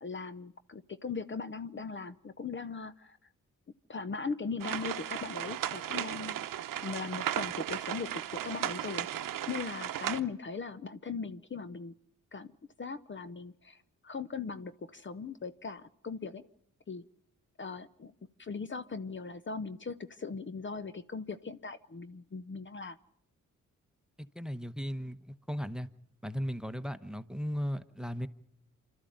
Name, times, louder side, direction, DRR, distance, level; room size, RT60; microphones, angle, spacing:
voice 1, 0.0-3.2 3.9-6.3 6.8-9.1 9.5-11.9 12.3-12.5 12.8-16.4 16.9-17.0 17.6-18.1 18.4-23.0, left 5 dB, 35° left, 13 dB, 0.8 m, -39 dB
sound 1, 4.6-10.2, right 11 dB, 85° right, 0.8 m, -36 dB
voice 2, 24.3-25.2 25.5-25.9 26.2-28.3, equal, ahead, 14 dB, 1.1 m, -36 dB
25.5 x 13.0 x 9.3 m, 0.73 s
cardioid pair, 60°, 32 cm